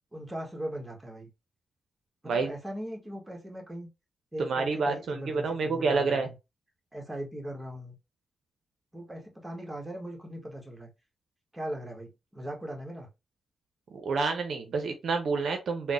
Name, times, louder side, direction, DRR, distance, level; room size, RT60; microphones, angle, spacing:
voice 1, 0.1-1.3 2.2-3.9 4.3-6.4 6.9-8.0 8.9-10.9 11.5-13.1, right 1 dB, 15° right, 1.3 m, -39 dB
voice 2, 4.4-6.3 14.0-15.9, right 4 dB, 70° right, 0.6 m, -28 dB
3.7 x 2.1 x 2.4 m
supercardioid pair, 50°, 0 cm